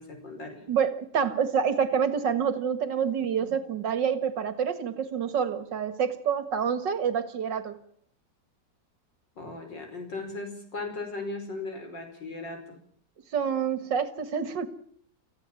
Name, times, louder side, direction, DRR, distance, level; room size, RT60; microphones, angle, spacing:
voice 1, 0.0-0.6 3.4-3.5 9.4-12.8, left 3 dB, 80° left, 6.0 m, -37 dB
voice 2, 0.7-7.8 13.3-14.7, right 7 dB, 80° right, 2.4 m, -27 dB
26.5 x 15.5 x 7.4 m
omnidirectional pair, 1.9 m